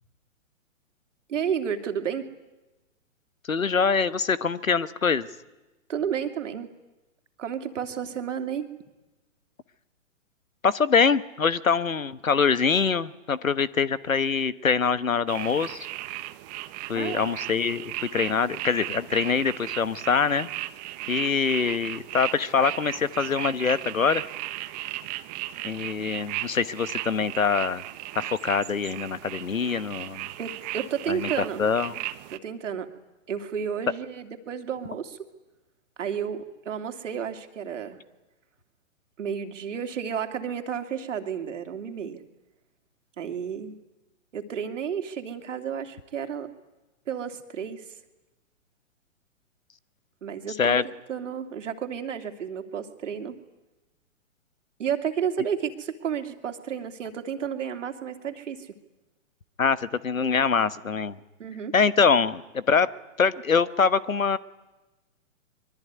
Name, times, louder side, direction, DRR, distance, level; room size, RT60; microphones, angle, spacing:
voice 1, 1.3-2.3 5.9-6.7 7.4-8.7 16.9-17.4 30.4-31.6 32.3-32.9 33.3-35.2 36.0-38.0 39.2-42.2 43.2-43.7 44.3-46.5 47.1-47.8 50.2-50.8 51.1-53.4 54.8-58.7 61.4-61.7, right 8 dB, 65° right, 6 dB, 2.8 m, -31 dB
voice 2, 3.5-5.3 10.6-15.9 16.9-20.5 21.1-24.2 25.6-27.8 28.1-30.3 31.1-32.0 50.5-50.8 59.6-61.2 61.7-62.9 63.2-64.4, left 5 dB, 90° left, 16 dB, 1.3 m, -24 dB
sound 1, 15.3-32.4, right 17 dB, 30° right, 1.1 m, -36 dB
24.5 x 22.5 x 9.6 m, 1.1 s
hypercardioid pair, 125°, 39 cm